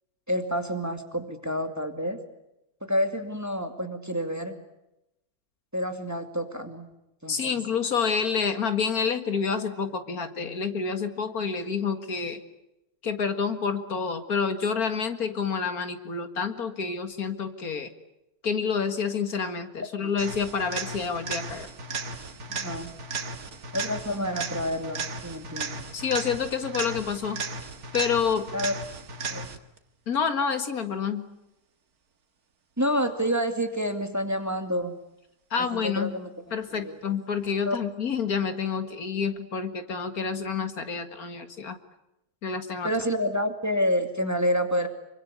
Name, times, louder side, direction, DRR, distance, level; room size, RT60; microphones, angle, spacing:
voice 1, 0.3-2.2 2.8-4.6 5.7-6.9 7.2-7.6 19.8-20.1 22.5-22.9 23.7-25.8 28.5-28.7 29.3-29.5 32.8-35.0 35.7-36.3 36.7-37.0 37.7-37.8 42.8-44.9, equal, 10° right, 6 dB, 2.4 m, -28 dB
voice 2, 7.3-12.4 13.0-17.9 18.4-21.7 25.9-27.4 27.9-28.5 30.1-31.2 35.5-36.1 36.5-41.8 42.4-42.9, left 6 dB, 75° left, 8 dB, 2.3 m, -28 dB
sound 1, 20.2-29.8 37.8-37.9, right 4 dB, 80° right, 2.2 m, -35 dB
26.5 x 24.5 x 8.4 m, 0.88 s
omnidirectional pair, 1.6 m